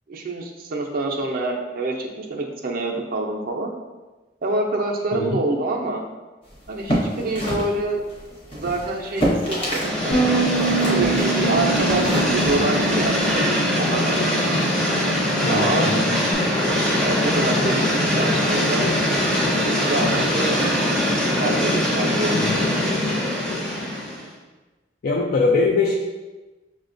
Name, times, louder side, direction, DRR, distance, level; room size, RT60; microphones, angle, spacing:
voice 1, 0.1-3.8 4.4-6.0 6.7-8.0 8.5-10.5 10.9-14.4 15.5-16.3 16.9-17.8 18.1-19.2 19.8-20.9 21.2-23.0, right 2 dB, 50° right, 1 dB, 0.4 m, -26 dB
sound 1, 6.6-10.0 10.2-13.4, equal, 30° left, 0.8 m, -27 dB
sound 2, 9.8-24.3, left 1 dB, 5° left, 0.5 m, -22 dB
Bass guitar, 10.1-16.3, right 6 dB, 75° left, 1.0 m, -28 dB
voice 2, 15.4-16.2 22.3-22.5 25.0-25.9, left 3 dB, 55° left, -2 dB, 0.3 m, -22 dB
6.0 x 2.1 x 2.5 m, 1.2 s
head